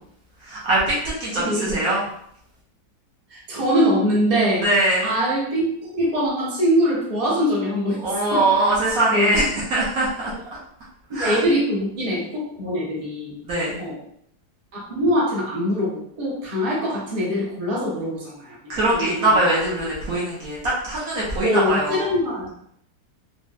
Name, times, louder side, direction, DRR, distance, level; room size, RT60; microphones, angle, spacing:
voice 1, 0.4-2.0 4.6-5.1 8.0-10.3 11.1-11.4 13.4-13.8 18.7-20.6 20.8-22.1, right 2 dB, 65° right, -6 dB, 1.1 m, -22 dB
voice 2, 1.3-1.8 3.3-4.6 5.0-8.0 8.3-8.4 9.1-9.3 10.3-10.4 11.1-13.3 13.8-14.0 14.9-18.6 18.9-19.1 21.3-22.5, equal, 25° right, -6 dB, 0.8 m, -23 dB
4.1 x 2.1 x 2.4 m, 0.70 s
omnidirectional pair, 1.8 m